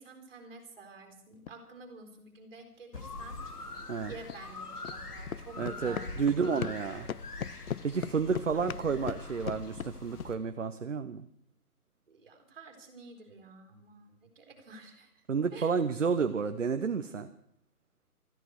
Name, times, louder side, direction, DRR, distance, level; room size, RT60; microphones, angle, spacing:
voice 1, 0.0-3.4 4.0-7.2 8.5-8.9 12.1-15.1 15.5-15.7, right 3 dB, 40° right, 3 dB, 4.1 m, -50 dB
sound 1, 1.3-1.5 3.0-3.1 4.3-4.4 4.8-5.0 5.3-6.8 7.1-10.3, left 8 dB, 65° left, 0.6 m, -38 dB
sound 2, 2.9-10.3, left 2 dB, 85° left, 2.5 m, -43 dB
voice 2, 5.6-7.1 7.8-11.3 15.3-17.3, right 5 dB, 55° right, 9 dB, 0.9 m, -31 dB
19.5 x 14.0 x 4.7 m, 0.66 s
hypercardioid pair, 175°, 45 cm